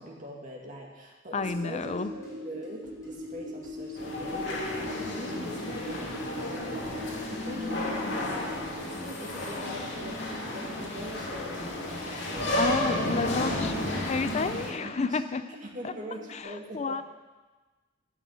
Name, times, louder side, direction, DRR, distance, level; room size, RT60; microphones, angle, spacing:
voice 1, 0.0-10.2 10.5-13.0 13.5-13.7 14.5-15.2 15.6-17.0, equal, 45° right, -1 dB, 2.3 m, -43 dB
voice 2, 1.3-2.1 12.6-13.7 14.0-15.4 15.8-15.9 16.3-17.0, left 4 dB, 35° left, 11 dB, 0.4 m, -30 dB
sound 1, 1.4-12.8, right 3 dB, 20° left, 4.0 m, -52 dB
sound 2, 1.4-16.4, equal, 60° right, 2.8 m, -42 dB
sound 3, 4.0-14.7, left 1 dB, 70° left, 2.5 m, -32 dB
13.0 x 6.2 x 9.3 m, 1.2 s
head